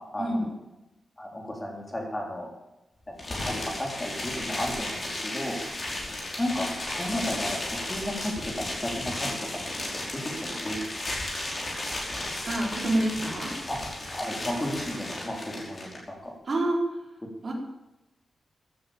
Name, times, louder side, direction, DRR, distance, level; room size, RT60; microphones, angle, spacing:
voice 1, 0.2-0.5 12.4-13.5 16.5-16.8 17.4-17.5, right 1 dB, 40° right, -2 dB, 4.6 m, -27 dB
voice 2, 1.2-2.5 3.1-5.6 6.4-9.4 10.1-11.0 13.7-13.8 14.1-16.3, left 1 dB, 15° left, 0 dB, 3.9 m, -33 dB
sound 1, 3.2-16.0, left 1 dB, 35° left, 5.1 m, -34 dB
16.0 x 10.5 x 7.2 m, 0.98 s
wide cardioid pair, 155°, 0 cm